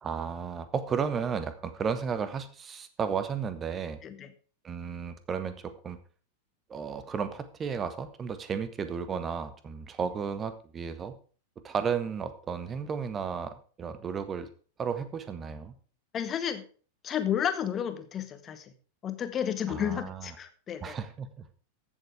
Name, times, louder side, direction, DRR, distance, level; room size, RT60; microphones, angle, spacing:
voice 1, 0.0-4.0 4.6-6.0 6.7-11.2 11.6-14.5 14.8-15.7 19.7-20.3 20.8-21.3, right 6 dB, 20° right, 12 dB, 1.4 m, -33 dB
voice 2, 16.1-16.6 17.0-18.7 19.0-21.0, left 9 dB, 25° left, 9 dB, 1.5 m, -32 dB
14.5 x 7.2 x 4.9 m, 0.41 s
figure-of-eight pair, 90°, 0 cm